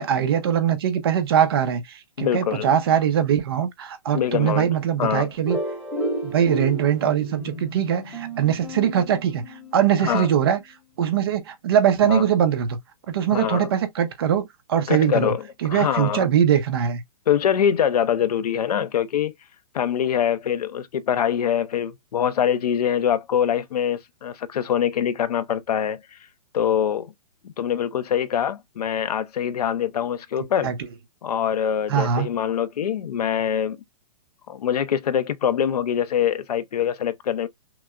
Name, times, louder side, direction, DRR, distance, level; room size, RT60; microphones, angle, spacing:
voice 1, 0.0-5.6 6.2-9.4 9.7-10.6 11.0-12.8 13.1-15.3 15.6-17.0 30.6-30.7 31.9-32.3, right 9 dB, 40° right, 0.7 m, -21 dB
voice 2, 2.2-2.7 4.1-4.7 5.0-5.3 10.0-10.3 12.0-12.2 13.3-13.7 14.9-15.4 15.7-16.2 17.3-19.3 19.7-26.0 26.5-27.1 27.4-30.7 31.2-33.8 34.5-37.5, left 9 dB, 75° left, 0.6 m, -24 dB
sound 1, 5.5-10.0, equal, 5° left, 0.8 m, -32 dB
5.9 x 2.1 x 2.4 m
hypercardioid pair, 170°, 20 cm